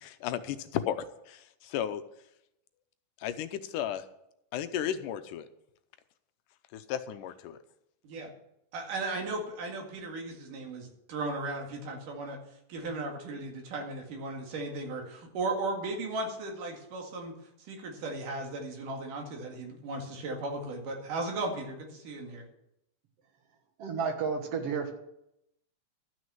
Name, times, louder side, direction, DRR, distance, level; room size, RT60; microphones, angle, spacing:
voice 1, 0.0-2.0 3.2-4.0 4.5-5.5 6.7-7.6, left 10 dB, 85° left, 11 dB, 2.3 m, -34 dB
voice 2, 8.7-12.4 12.7-17.3 17.7-22.4, right 2 dB, 80° right, 1 dB, 3.7 m, -36 dB
voice 3, 23.8-24.9, right 5 dB, 55° right, 5 dB, 2.1 m, -31 dB
12.5 x 6.3 x 7.6 m, 0.82 s
omnidirectional pair, 3.6 m